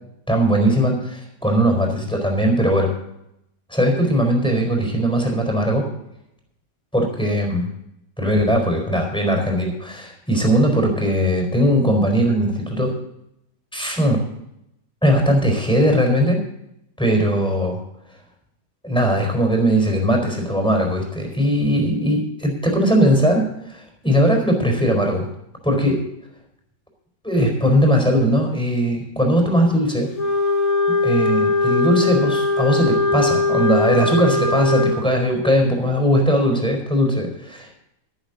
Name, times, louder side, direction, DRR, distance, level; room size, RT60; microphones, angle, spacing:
voice 1, 0.3-2.9 3.7-5.8 6.9-7.6 8.2-12.9 13.7-14.2 15.0-16.4 17.0-17.8 18.8-25.3 25.6-26.0 27.2-30.1 31.0-37.8, equal, 5° left, 2 dB, 4.3 m, -19 dB
Wind instrument woodwind instrument, 30.1-35.0, left 3 dB, 60° left, 3.9 m, -20 dB
13.0 x 13.0 x 4.0 m, 0.80 s
omnidirectional pair, 1.8 m